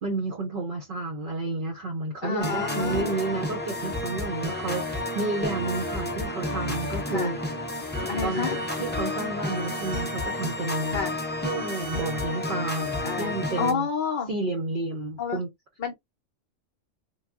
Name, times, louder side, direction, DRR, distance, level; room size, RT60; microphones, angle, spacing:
voice 1, 0.0-7.4 7.9-8.5 8.8-11.0 11.4-13.9 14.3-15.5, right 2 dB, 50° right, 0.7 m, -31 dB
voice 2, 2.2-3.1 7.1-7.3 8.1-8.6 10.9-11.2 13.0-14.3 15.2-15.4 15.8-15.9, left 5 dB, 50° left, 0.7 m, -29 dB
sound 1, 2.4-13.7, left 1 dB, 15° left, 0.4 m, -31 dB
3.4 x 2.3 x 2.4 m
omnidirectional pair, 1.3 m